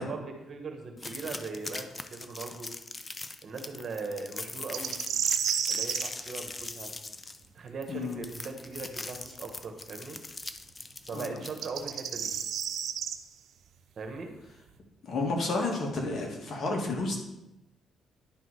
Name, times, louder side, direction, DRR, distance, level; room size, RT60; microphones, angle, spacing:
voice 1, 0.0-2.7 3.4-4.9 5.7-6.9 7.5-10.2 11.1-12.3 14.0-14.3, right 4 dB, 50° right, 4 dB, 1.5 m, -39 dB
sound 1, 1.0-12.7, left 3 dB, 25° left, 0.5 m, -41 dB
sound 2, 4.7-6.1 9.2-9.3 11.5-13.2, right 8 dB, 70° right, 0.5 m, -30 dB
voice 2, 7.9-8.2 11.1-11.3 15.0-17.2, left 2 dB, 55° left, 1 dB, 1.7 m, -31 dB
10.5 x 3.8 x 4.8 m, 0.93 s
cardioid pair, 90°, 0 cm